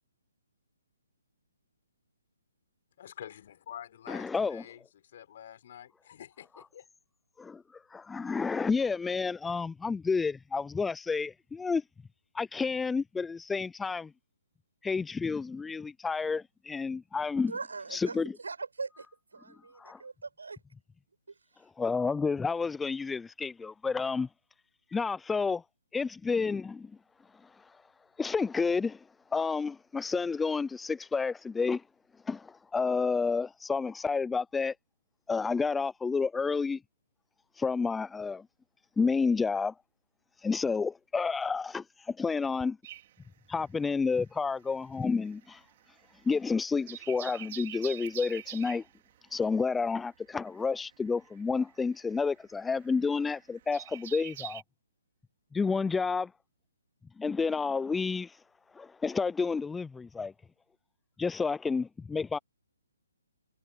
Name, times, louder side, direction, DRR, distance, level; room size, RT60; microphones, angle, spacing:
voice 1, 3.0-6.9, left 10 dB, 50° left, 6.3 m, -47 dB
voice 2, 4.1-4.6 7.4-11.8 12.3-14.1 14.8-17.5 17.9-18.3 19.5-20.0 21.8-24.3 24.9-25.6 25.9-26.9 27.4-27.8 28.2-29.0 29.3-31.8 32.3-34.7 35.3-36.8 37.6-38.5 39.0-39.7 40.4-42.8 43.5-45.6 46.2-48.8 49.3-54.6 55.5-56.3 57.2-58.4 58.7-60.3 61.2-62.4, left 4 dB, 5° left, 0.4 m, -30 dB
voice 3, 17.5-20.6 21.3-21.6, right 4 dB, 85° right, 7.7 m, -41 dB
sound 1, 42.8-44.3 44.5-54.6, right 13 dB, 45° right, 3.1 m, -46 dB
hypercardioid pair, 145°, 0 cm